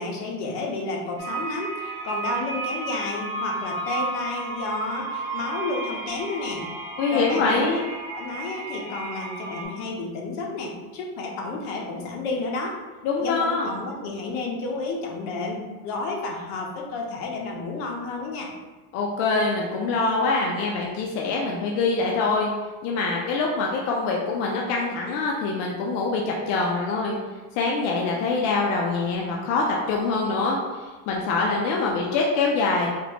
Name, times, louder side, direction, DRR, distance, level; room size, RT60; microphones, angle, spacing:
voice 1, 0.0-6.7 7.1-7.7 8.1-12.8 13.2-18.5, left 3 dB, 65° left, 0 dB, 1.0 m, -31 dB
sound 1, 1.2-9.6, right 3 dB, 30° right, 1.0 m, -33 dB
voice 2, 7.0-7.8 13.0-13.7 18.9-22.5 22.8-27.2 27.5-32.9, left 3 dB, 45° left, -2 dB, 0.5 m, -24 dB
4.2 x 2.0 x 4.3 m, 1.3 s
cardioid pair, 160°, 39 cm